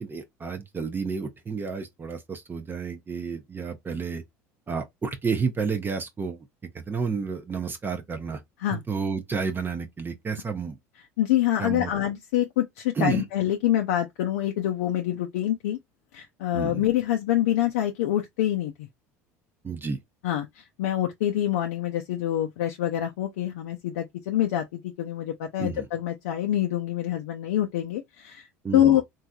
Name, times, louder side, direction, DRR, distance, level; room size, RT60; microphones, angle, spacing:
voice 1, 0.0-4.2 4.7-6.4 6.7-8.4 8.7-10.8 11.6-11.9 13.0-13.3 16.5-16.9 19.6-20.0 25.6-25.9 28.6-29.0, right 5 dB, 25° right, 0.6 m, -31 dB
voice 2, 11.2-15.8 16.1-18.7 20.2-28.5 28.7-29.0, left 12 dB, 80° left, 0.5 m, -26 dB
3.2 x 2.6 x 2.3 m
hypercardioid pair, 80°, 8 cm